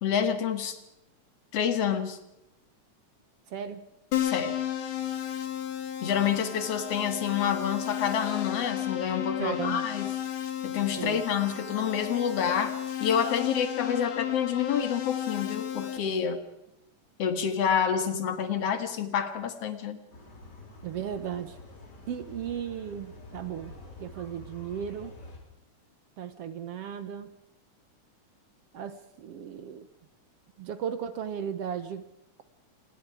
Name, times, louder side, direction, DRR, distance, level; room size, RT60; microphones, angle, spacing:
voice 1, 0.0-0.8 1.5-2.2 4.2-4.5 6.0-10.1 10.6-16.4 17.2-20.0, left 8 dB, 55° left, 9 dB, 2.6 m, -28 dB
voice 2, 3.5-3.9 9.4-9.9 11.0-11.2 20.8-21.6 22.1-25.1 26.2-27.3 28.7-29.9 30.6-32.1, right 8 dB, 65° right, 11 dB, 1.7 m, -36 dB
Keyboard (musical), 4.1-16.0, left 10 dB, 85° left, 3.5 m, -33 dB
sound 1, 20.1-25.4, left 2 dB, 35° left, 4.1 m, -47 dB
27.5 x 20.0 x 4.8 m, 0.88 s
omnidirectional pair, 3.5 m